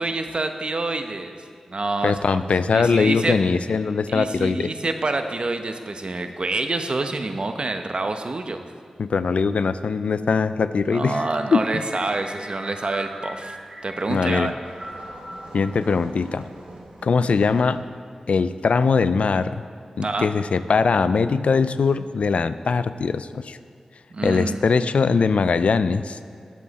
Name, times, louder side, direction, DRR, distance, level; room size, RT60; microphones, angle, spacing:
voice 1, 0.0-1.4 1.7-2.2 2.7-3.4 4.1-8.6 10.9-13.6 13.8-14.5 20.0-20.3 24.1-24.6, right 2 dB, 55° right, 7 dB, 1.0 m, -27 dB
voice 2, 2.0-4.7 9.0-11.2 11.5-11.6 14.1-14.5 15.5-16.5 17.0-17.8 18.3-19.6 20.0-23.6 24.2-26.2, left 5 dB, 80° left, 13 dB, 0.4 m, -21 dB
sound 1, 11.1-16.5, right 1 dB, 25° right, 1.7 m, -40 dB
sound 2, 14.6-17.7, right 1 dB, 80° right, 2.1 m, -43 dB
19.5 x 7.5 x 4.2 m, 2.4 s
cardioid pair, 50°, 2 cm